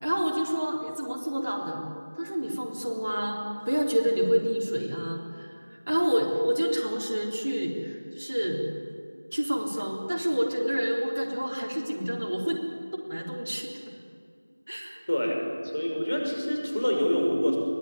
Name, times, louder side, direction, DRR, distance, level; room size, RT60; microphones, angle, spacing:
voice 1, 0.0-1.8 2.2-8.6 9.3-12.6 12.9-13.7 14.7-15.0, equal, 45° right, 0 dB, 3.7 m, -28 dB
voice 2, 15.1-15.4 15.6-17.6, equal, 45° left, 1 dB, 5.9 m, -26 dB
23.0 x 19.0 x 9.9 m, 2.3 s
figure-of-eight pair, 175°, 0 cm